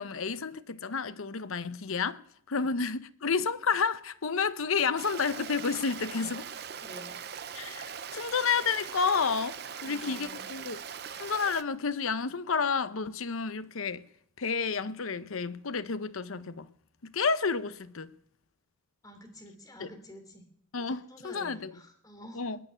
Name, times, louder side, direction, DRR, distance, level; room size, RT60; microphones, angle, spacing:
voice 1, 0.0-2.2 2.5-6.5 7.5-10.8 11.2-14.0 14.4-16.7 17.0-18.1 19.8-19.9 20.7-21.7 22.3-22.6, left 5 dB, 75° left, 0.8 m, -30 dB
Stream, 5.0-11.6, right 7 dB, 50° right, 0.7 m, -41 dB
voice 2, 6.8-7.2 9.7-10.5 19.0-20.4 21.1-22.4, equal, 15° left, 3.1 m, -49 dB
20.0 x 6.7 x 9.9 m
head